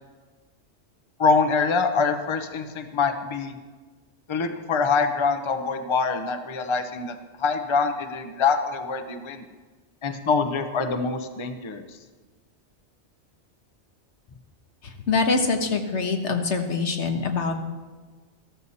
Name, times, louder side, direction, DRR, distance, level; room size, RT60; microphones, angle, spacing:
voice 1, 1.2-3.6 4.3-9.4 10.0-11.8, left 4 dB, 30° left, 7 dB, 0.8 m, -25 dB
voice 2, 14.8-17.5, left 4 dB, 75° left, 5 dB, 1.5 m, -24 dB
14.0 x 13.5 x 4.2 m, 1.4 s
omnidirectional pair, 1.2 m